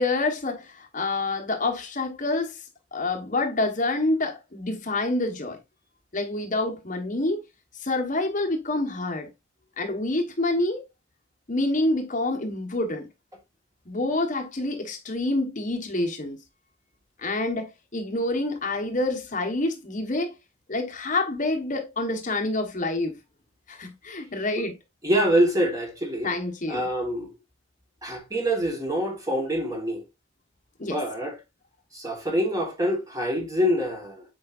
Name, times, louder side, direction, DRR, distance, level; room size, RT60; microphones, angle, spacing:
voice 1, 0.0-2.6 2.9-5.6 6.1-7.4 7.8-9.3 9.8-10.8 11.5-13.1 13.9-16.4 17.2-20.3 20.7-23.2 23.7-24.8 26.2-26.9 30.8-31.0, left 2 dB, 40° left, 1.2 m, -27 dB
voice 2, 25.0-26.3 26.7-27.3 28.0-30.0 30.8-31.3 31.9-34.2, equal, 15° right, 1.5 m, -25 dB
8.6 x 4.5 x 2.5 m
head